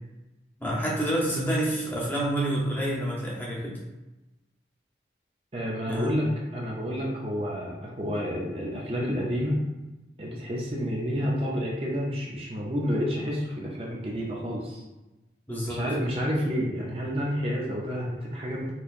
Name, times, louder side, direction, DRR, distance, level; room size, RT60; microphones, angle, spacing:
voice 1, 0.6-3.8 5.9-6.1 15.5-15.8, right 1 dB, 10° left, -5 dB, 0.8 m, -28 dB
voice 2, 5.5-9.6 10.2-14.8 15.7-18.7, equal, 30° right, -3 dB, 0.5 m, -29 dB
4.5 x 2.8 x 2.5 m, 1.0 s
head